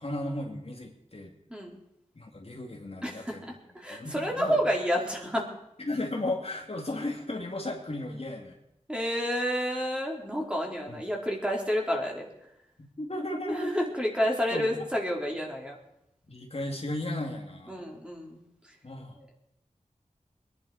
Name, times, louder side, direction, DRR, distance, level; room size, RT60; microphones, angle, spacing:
voice 1, 0.0-1.3 2.1-3.5 3.9-4.6 5.8-8.6 10.9-11.0 12.8-13.7 14.5-14.7 16.2-17.9 18.8-19.3, left 1 dB, 50° left, 0 dB, 2.9 m, -35 dB
voice 2, 3.0-5.5 8.9-12.3 13.5-15.8 17.7-18.4 19.2-19.3, equal, 5° right, -1 dB, 4.2 m, -30 dB
22.5 x 11.0 x 5.1 m, 0.83 s
wide cardioid pair, 50°, 13 cm